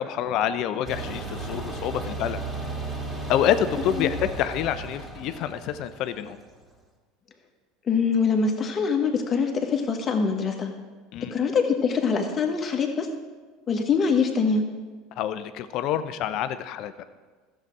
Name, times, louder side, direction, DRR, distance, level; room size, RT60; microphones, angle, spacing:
voice 1, 0.0-2.4 3.3-6.4 11.1-11.3 15.2-17.0, left 10 dB, 55° left, 11 dB, 0.6 m, -27 dB
sound 1, 0.8-6.6, right 2 dB, 15° right, 2.5 m, -35 dB
voice 2, 7.9-10.7 11.3-13.1 13.7-14.6, left 5 dB, 35° left, 4 dB, 1.6 m, -24 dB
14.0 x 7.5 x 4.7 m, 1.4 s
hypercardioid pair, 75°, 0 cm